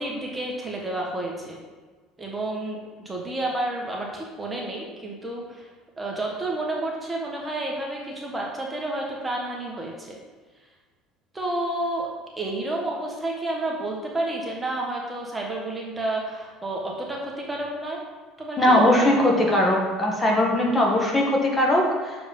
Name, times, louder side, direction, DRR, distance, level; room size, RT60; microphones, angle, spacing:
voice 1, 0.0-1.6 2.2-2.8 3.0-5.7 6.0-10.2 11.3-12.1 12.4-18.0 18.4-19.2, right 2 dB, 15° right, -2 dB, 1.4 m, -30 dB
voice 2, 18.6-22.2, left 1 dB, 20° left, -1 dB, 1.7 m, -20 dB
6.9 x 5.1 x 5.4 m, 1.4 s
supercardioid pair, 100°, 0 cm